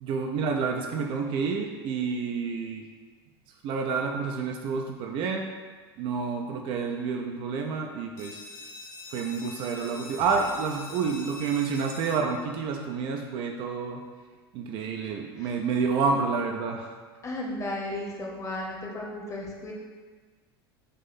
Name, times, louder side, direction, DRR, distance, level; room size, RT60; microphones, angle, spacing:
voice 1, 0.0-2.8 3.6-5.5 6.0-8.4 9.1-14.0 14.5-17.0, right 5 dB, 40° right, 2 dB, 0.4 m, -29 dB
sound 1, 8.2-13.6, left 2 dB, 60° left, 0.7 m, -45 dB
voice 2, 17.2-19.7, left 1 dB, 20° left, -2 dB, 0.8 m, -34 dB
3.8 x 2.6 x 4.0 m, 1.5 s
figure-of-eight pair, 75°, 13 cm